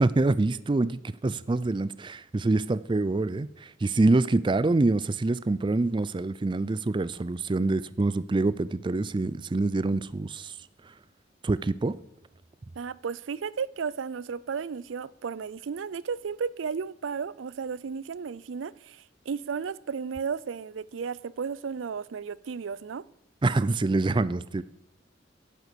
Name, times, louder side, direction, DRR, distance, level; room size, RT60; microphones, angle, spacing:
voice 1, 0.0-10.5 11.4-12.0 23.4-24.6, right 2 dB, 25° right, 0.4 m, -26 dB
voice 2, 12.8-23.0, right 6 dB, 85° right, 0.4 m, -34 dB
11.0 x 11.0 x 6.9 m
head